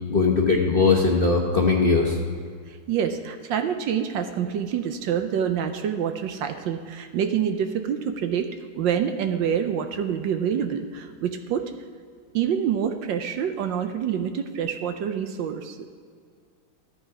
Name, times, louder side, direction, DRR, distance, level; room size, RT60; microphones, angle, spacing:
voice 1, 0.1-2.2, left 4 dB, 40° left, -1 dB, 0.9 m, -20 dB
voice 2, 2.7-11.7 12.3-15.9, right 8 dB, 70° right, 7 dB, 1.3 m, -27 dB
14.0 x 8.0 x 4.8 m, 2.1 s
omnidirectional pair, 2.2 m